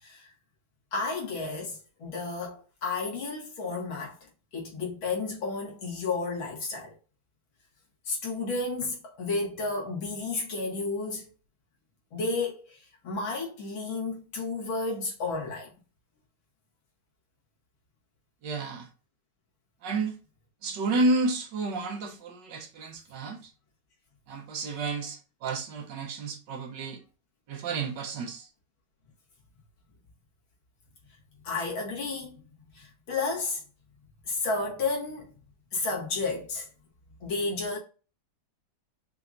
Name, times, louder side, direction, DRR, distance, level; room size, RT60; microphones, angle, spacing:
voice 1, 0.0-0.3 0.9-4.2 4.5-6.9 8.1-11.2 12.1-15.7 31.4-32.4 32.7-33.6 34.3-35.3 35.7-36.7 37.2-37.8, left 3 dB, 75° left, 2.6 m, -32 dB
voice 2, 18.4-18.9 19.8-20.1 20.6-23.5 24.3-27.0 27.5-28.5, right 3 dB, 65° right, 1.4 m, -31 dB
5.6 x 2.9 x 2.5 m
omnidirectional pair, 2.2 m